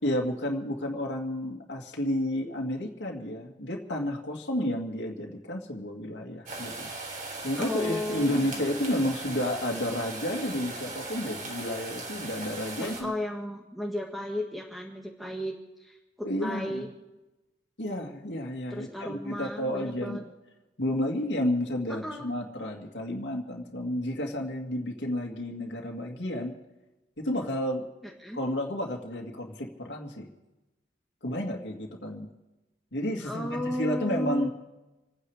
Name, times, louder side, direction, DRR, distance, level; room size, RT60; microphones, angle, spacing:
voice 1, 0.0-6.9 7.4-13.1 16.2-16.8 17.8-20.2 20.8-26.6 27.2-27.9 28.3-30.3 31.2-32.3 32.9-34.5, left 1 dB, 80° left, 0 dB, 2.2 m, -31 dB
sound 1, 6.5-13.0, right 2 dB, 50° right, 3.8 m, -38 dB
voice 2, 7.6-8.6 12.8-15.5 15.8-16.9 18.7-20.2 21.9-22.2 28.0-28.4 33.2-34.5, left 1 dB, ahead, -1 dB, 1.6 m, -34 dB
28.5 x 9.7 x 4.9 m, 1.0 s
head